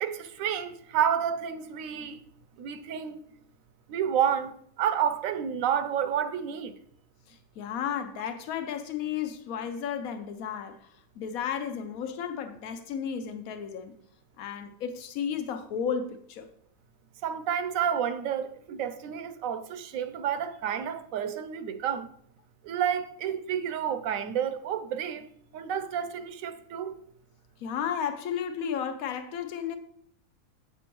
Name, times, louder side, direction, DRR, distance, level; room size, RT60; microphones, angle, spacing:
voice 1, 0.0-2.2 2.6-3.2 3.9-6.8 17.2-22.1 22.6-25.2 25.5-27.0, right 8 dB, 75° right, 1.0 m, -30 dB
voice 2, 7.3-13.9 14.4-16.5 27.6-29.8, left 8 dB, 85° left, 1.2 m, -33 dB
8.0 x 6.0 x 3.0 m
omnidirectional pair, 1.5 m